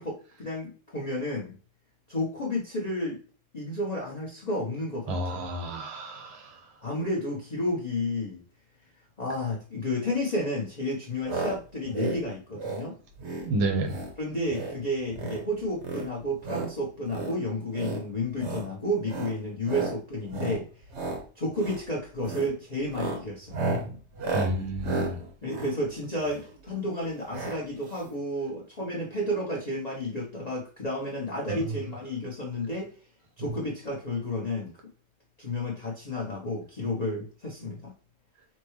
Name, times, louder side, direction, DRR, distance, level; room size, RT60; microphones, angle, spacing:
voice 1, 0.0-1.6 2.1-3.2 3.5-5.4 6.8-8.4 9.2-12.9 14.2-20.6 21.3-23.6 25.4-32.9 33.4-34.7 35.4-37.9, left 1 dB, 45° left, 0.5 m, -31 dB
voice 2, 5.1-6.6 13.4-14.0 24.3-25.2 31.5-31.7 33.4-33.5, right 2 dB, 80° right, 1.9 m, -30 dB
sound 1, 11.2-11.5 11.8-12.2 12.5-12.8 13.2-13.5 13.8-14.1 14.4-14.8 15.1-15.4 15.8-16.7 17.1-17.3 17.7-18.0 18.4-18.7 19.0-19.3 19.6-19.9 20.3-20.6 20.9-21.2 21.6-21.8 22.2-22.5 22.8-26.5 27.3-27.6 27.9-28.0 28.1-28.2, right 3 dB, 50° right, 0.9 m, -33 dB
5.8 x 2.3 x 3.1 m
omnidirectional pair, 2.4 m